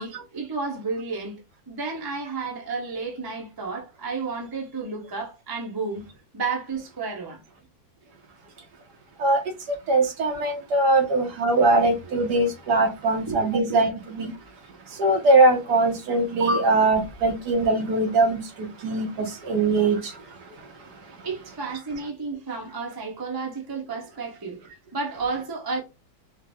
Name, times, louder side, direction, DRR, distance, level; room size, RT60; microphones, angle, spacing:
voice 1, 0.0-1.4 1.7-6.0 6.3-7.4 13.3-13.4 13.7-13.8 21.2-24.6 24.9-25.8, right 4 dB, 20° right, 0.6 m, -31 dB
voice 2, 9.9-14.3 15.0-20.0, right 2 dB, 65° right, 1.3 m, -21 dB
4.6 x 2.1 x 3.5 m
omnidirectional pair, 2.1 m